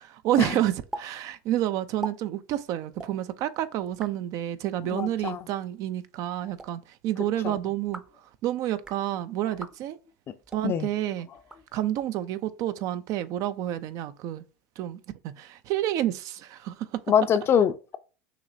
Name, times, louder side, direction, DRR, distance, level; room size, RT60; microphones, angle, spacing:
voice 1, 0.0-8.0 8.4-10.0 10.5-11.3 11.7-14.4 14.8-17.0, right 12 dB, 55° right, 0.5 m, -29 dB
sound 1, 0.9-1.1 1.3-1.4 1.8-2.1 2.9-3.1 3.8-4.1 5.1-5.4 6.4-6.7 7.7-8.2 8.7-9.0 9.5-9.7 10.4-10.7 11.4-12.1, right 2 dB, 10° right, 0.6 m, -41 dB
voice 2, 4.8-5.5 7.4-7.6 10.6-10.9 17.1-18.0, left 8 dB, 35° left, 0.5 m, -24 dB
5.9 x 2.9 x 2.7 m
hypercardioid pair, 100°, 7 cm